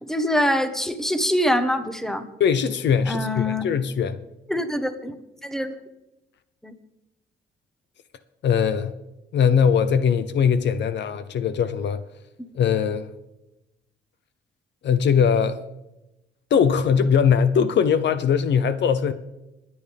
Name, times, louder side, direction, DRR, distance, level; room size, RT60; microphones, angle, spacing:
voice 1, 0.0-2.3 3.1-3.6 4.5-5.1 5.4-5.7 6.6-6.7, equal, ahead, 1.2 m, -24 dB
voice 2, 2.4-4.2 8.4-8.9 9.3-12.0 12.5-13.1 14.8-15.6 16.5-19.1, left 7 dB, 65° left, 0.7 m, -20 dB
21.5 x 9.6 x 3.5 m
cardioid pair, 90°, 20 cm